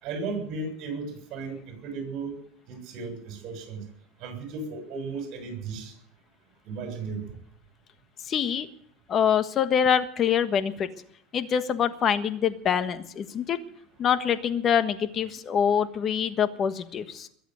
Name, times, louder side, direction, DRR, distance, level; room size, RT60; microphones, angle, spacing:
voice 1, 0.0-2.4 2.7-3.8 4.2-5.9 6.7-7.2, right 4 dB, 55° right, 4 dB, 7.4 m, -35 dB
voice 2, 8.3-8.7 9.1-10.9 11.3-13.6 14.0-17.3, left 8 dB, 35° left, 11 dB, 1.4 m, -25 dB
22.0 x 8.1 x 7.9 m, 0.66 s
supercardioid pair, 125°, 0 cm